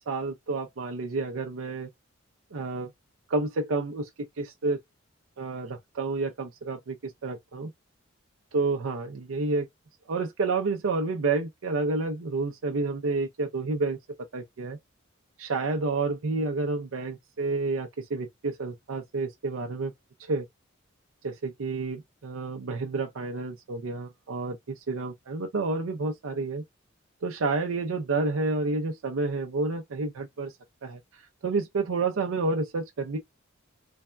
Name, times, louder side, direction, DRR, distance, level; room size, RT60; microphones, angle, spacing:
voice 1, 0.1-1.9 2.5-2.9 3.3-4.8 5.4-7.7 8.5-9.7 10.1-14.0 14.3-14.8 15.4-19.9 20.2-20.5 21.2-26.6 27.2-33.2, right 3 dB, 80° right, 0.5 m, -30 dB
3.3 x 2.2 x 2.3 m
head